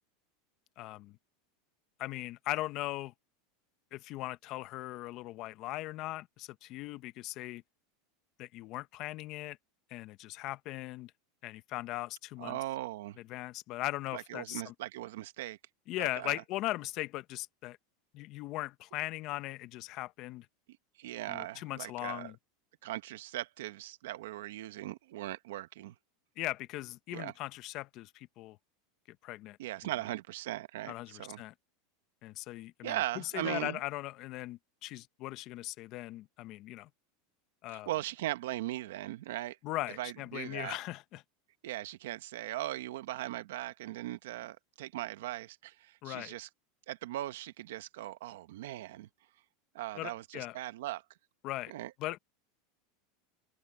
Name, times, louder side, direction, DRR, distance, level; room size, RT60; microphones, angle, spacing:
voice 1, 0.8-1.2 2.0-3.1 3.9-7.6 8.4-9.6 9.9-11.1 11.4-12.6 13.2-14.7 15.9-17.8 18.1-20.5 21.3-22.4 26.4-28.6 29.1-29.6 29.8-29.9 30.9-31.5 32.2-36.9 37.6-37.9 39.6-41.2 46.0-46.3 49.9-50.6 51.4-51.7 52.0-52.2, left 17 dB, 45° left, 0.9 m, -39 dB
voice 2, 12.4-13.2 14.1-15.6 16.0-16.3 21.0-22.3 22.8-25.9 27.1-27.3 29.6-31.4 32.8-33.8 37.7-39.6 40.0-40.8 41.6-46.5 46.9-49.1 49.7-51.0 51.7-51.9, right 15 dB, 80° right, 1.3 m, -39 dB
open air
supercardioid pair, 145°, 0 cm